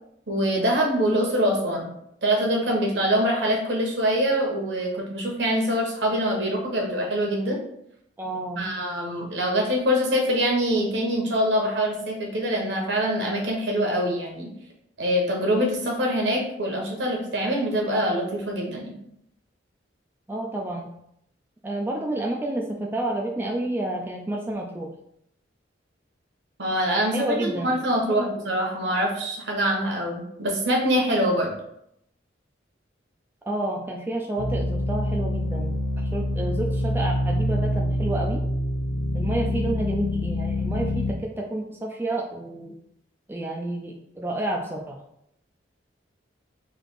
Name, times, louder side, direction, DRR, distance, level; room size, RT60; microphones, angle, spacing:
voice 1, 0.3-1.9 2.2-7.6 8.6-14.5 15.0-19.0 26.6-31.5, equal, 65° right, 0 dB, 1.1 m, -24 dB
voice 2, 8.2-8.6 20.3-20.9 21.6-24.9 27.1-27.7 28.1-28.3 33.5-38.4 39.1-42.7 43.3-45.0, right 1 dB, 10° right, 0 dB, 0.3 m, -30 dB
sound 1, 34.4-41.1, left 1 dB, 90° left, 0.6 m, -26 dB
3.3 x 2.8 x 4.1 m, 0.76 s
head